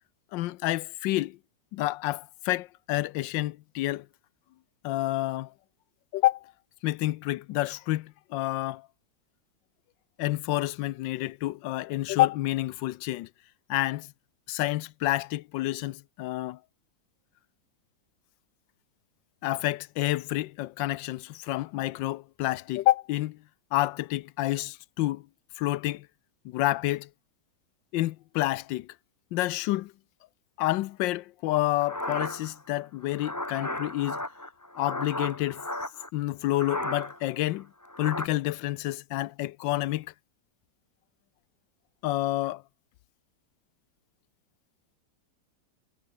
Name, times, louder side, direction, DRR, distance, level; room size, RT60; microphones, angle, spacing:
voice 1, 0.3-1.4 1.7-4.1 4.8-5.5 6.1-6.5 6.8-8.9 10.2-13.3 13.7-14.1 14.5-16.6 19.4-23.4 23.7-25.2 25.6-26.1 26.4-27.1 27.9-28.9 29.3-29.9 30.6-34.2 34.8-35.6 36.1-37.7 38.0-40.1 42.0-42.6, left 16 dB, 90° left, 1.3 m, -29 dB
sound 1, 31.8-36.1 36.5-37.3 37.6-38.3, left 1 dB, 10° left, 2.1 m, -35 dB
omnidirectional pair, 1.9 m